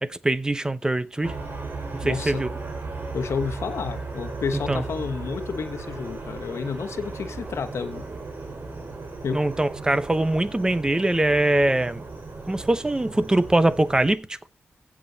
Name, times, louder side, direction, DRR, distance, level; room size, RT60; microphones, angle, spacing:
voice 1, 0.0-1.3 2.0-2.5 4.7-4.8 9.3-12.0 12.5-14.4, right 1 dB, 15° right, 0.8 m, -22 dB
sound 1, 1.2-14.1, right 3 dB, 50° right, 4.8 m, -36 dB
voice 2, 2.0-2.5 3.1-8.1 9.2-9.4, left 5 dB, 90° left, 1.1 m, -30 dB
16.0 x 6.2 x 4.0 m
wide cardioid pair, 130°, 5 cm